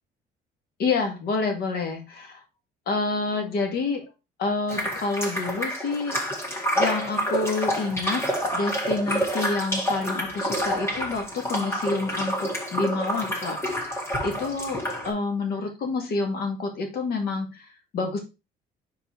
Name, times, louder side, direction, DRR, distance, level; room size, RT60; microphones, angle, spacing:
voice 1, 0.8-2.4 2.9-4.0 4.4-6.2 6.8-8.2 8.5-17.7 17.9-18.2, left 3 dB, 65° left, 3 dB, 2.2 m, -28 dB
sound 1, 4.7-15.1, equal, 15° left, 2.1 m, -28 dB
4.8 x 4.8 x 4.6 m, 0.27 s
cardioid pair, 110°, 17 cm